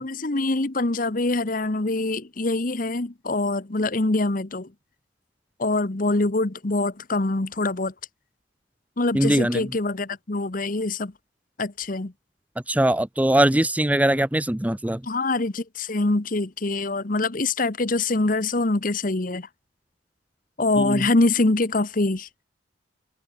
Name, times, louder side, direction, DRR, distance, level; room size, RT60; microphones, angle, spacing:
voice 1, 0.0-4.7 5.6-7.9 9.0-11.1 11.6-12.1 15.0-19.5 20.6-22.4, left 2 dB, 45° left, 1.1 m, -24 dB
voice 2, 9.1-9.7 12.7-15.0 20.8-21.0, right 1 dB, 5° right, 0.5 m, -21 dB
head